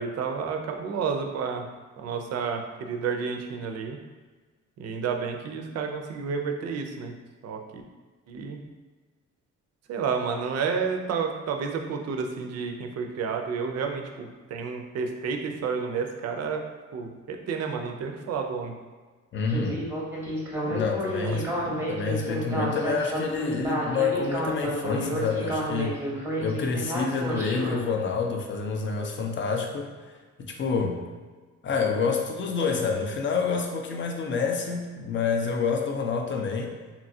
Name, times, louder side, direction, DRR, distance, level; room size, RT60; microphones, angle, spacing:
voice 1, 0.0-1.7 2.0-4.0 4.8-7.1 7.4-7.8 8.3-8.6 9.9-16.6 16.9-18.7 21.2-21.4 21.6-21.8, right 5 dB, 55° right, 4 dB, 0.4 m, -30 dB
voice 2, 19.3-19.8 20.6-21.6 21.9-26.0 26.4-29.9 30.4-31.0 31.6-36.7, left 5 dB, 40° left, 3 dB, 0.4 m, -28 dB
Speech synthesizer, 19.5-27.8, right 1 dB, 10° right, 0.7 m, -30 dB
2.8 x 2.3 x 2.6 m, 1.4 s
cardioid pair, 90°, 30 cm